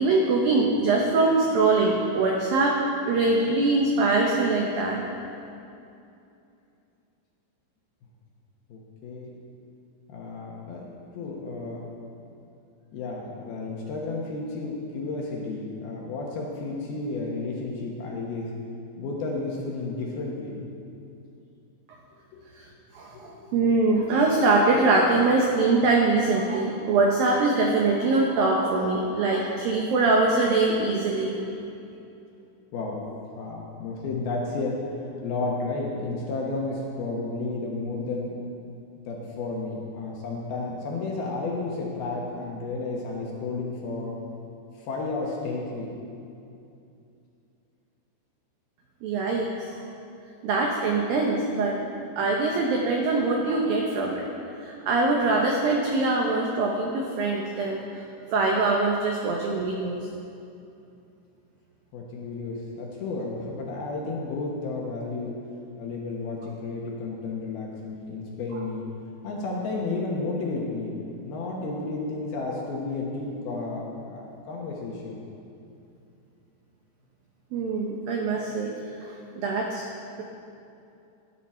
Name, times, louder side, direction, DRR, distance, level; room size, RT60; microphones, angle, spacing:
voice 1, 0.0-2.8 3.1-5.0 23.0-31.4 49.0-49.7 50.4-51.8 52.2-54.2 54.6-57.8 58.3-60.0 77.5-78.7 79.0-79.2 79.4-79.8, right 3 dB, 85° right, 0 dB, 2.0 m, -23 dB
voice 2, 8.7-9.3 10.1-11.9 12.9-18.5 19.0-20.7 23.1-23.7 32.7-33.0 33.4-38.4 38.9-44.2 44.8-45.9 61.9-65.4 65.8-68.9 69.2-70.9 71.2-75.3, left 3 dB, 65° left, -2 dB, 2.6 m, -32 dB
17.0 x 11.0 x 4.4 m, 2.6 s
omnidirectional pair, 5.7 m